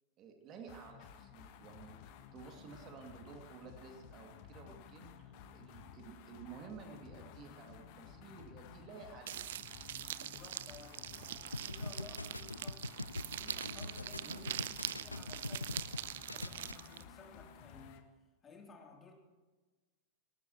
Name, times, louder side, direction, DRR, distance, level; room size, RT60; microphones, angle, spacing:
voice 1, 0.2-2.0 2.3-9.4 14.2-14.4, right 6 dB, 35° right, 3 dB, 2.4 m, -53 dB
sound 1, 0.7-18.1, left 8 dB, 45° left, 1.4 m, -54 dB
sound 2, 9.3-17.0, right 12 dB, 60° right, 0.5 m, -43 dB
voice 2, 10.1-12.9 13.3-14.6 14.9-18.1 18.4-19.2, left 3 dB, 20° left, 1 dB, 3.2 m, -56 dB
sound 3, 11.5-16.0 16.3-16.7, left 2 dB, 85° left, 0.4 m, -43 dB
19.0 x 19.0 x 3.1 m, 1.3 s
figure-of-eight pair, 90°, 0 cm